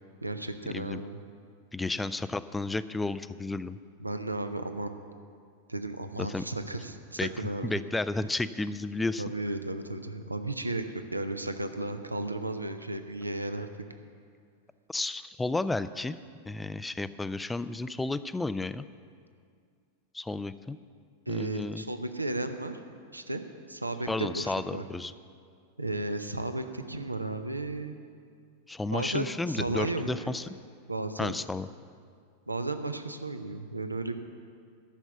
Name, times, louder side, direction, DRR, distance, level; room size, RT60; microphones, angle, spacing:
voice 1, 0.2-1.2 4.0-5.0 5.7-7.7 9.2-10.9 11.1-13.7 21.3-22.8 23.1-23.4 23.7-24.9 25.8-28.0 28.9-30.4 30.9-31.4 32.5-34.1, right 2 dB, 85° right, 8 dB, 0.7 m, -34 dB
voice 2, 1.7-3.8 6.2-6.4 7.2-7.3 7.6-9.2 14.9-16.2 16.5-18.9 20.1-20.8 21.3-21.8 24.1-25.1 28.7-30.6 31.2-31.7, left 2 dB, 10° left, 14 dB, 0.4 m, -32 dB
11.5 x 7.2 x 8.1 m, 2.2 s
figure-of-eight pair, 90°, 0 cm